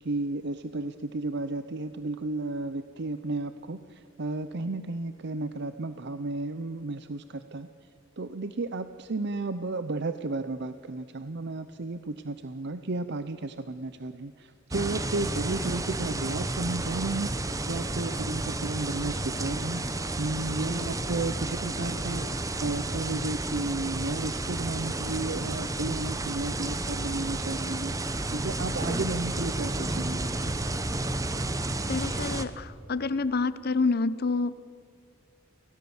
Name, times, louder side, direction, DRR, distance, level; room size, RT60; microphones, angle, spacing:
voice 1, 0.0-7.7 8.2-30.5, right 2 dB, 55° right, 11 dB, 0.7 m, -33 dB
sound 1, 14.7-32.5, right 2 dB, 15° right, 1.0 m, -31 dB
voice 2, 31.9-34.5, left 3 dB, 50° left, 15 dB, 0.8 m, -28 dB
24.5 x 17.5 x 7.2 m, 2.3 s
head